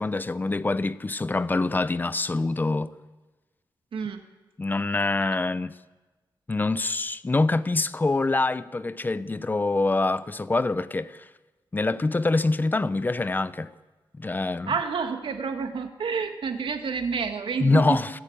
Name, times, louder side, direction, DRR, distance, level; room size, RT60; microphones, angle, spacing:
voice 1, 0.0-2.9 4.6-5.7 6.5-11.3 11.7-13.7 14.2-14.7 17.6-18.1, left 3 dB, 20° left, 0.6 m, -25 dB
voice 2, 3.9-4.2 14.7-18.0, right 5 dB, 75° right, 1.9 m, -29 dB
29.5 x 11.5 x 8.7 m
wide cardioid pair, 160°, 9 cm